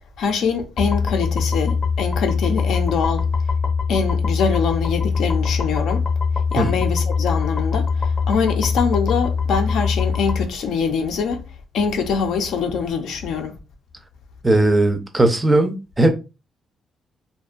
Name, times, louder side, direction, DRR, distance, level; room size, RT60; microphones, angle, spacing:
voice 1, 0.2-3.3 3.9-6.0 6.5-11.4 11.7-13.6, left 6 dB, 90° left, 0.5 m, -23 dB
sound 1, 0.8-10.4, left 5 dB, 30° left, 0.6 m, -22 dB
voice 2, 14.4-16.1, right 2 dB, 15° right, 0.4 m, -17 dB
2.5 x 2.2 x 2.4 m
cardioid pair, 140°, 0 cm